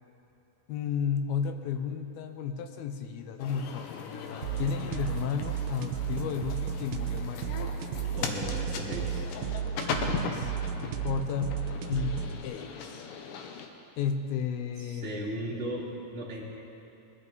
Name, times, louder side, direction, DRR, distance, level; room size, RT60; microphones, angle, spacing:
voice 1, 0.7-7.8 10.0-10.5 11.0-13.1 14.0-15.6, left 6 dB, 90° left, 7 dB, 2.7 m, -33 dB
sound 1, 3.4-13.7, left 5 dB, 70° left, 2.4 m, -38 dB
sound 2, 4.4-12.4, right 8 dB, 80° right, 2.3 m, -33 dB
voice 2, 8.2-9.2 14.8-16.4, right 1 dB, ahead, -6 dB, 1.2 m, -36 dB
20.5 x 12.0 x 4.0 m, 2.8 s
omnidirectional pair, 4.2 m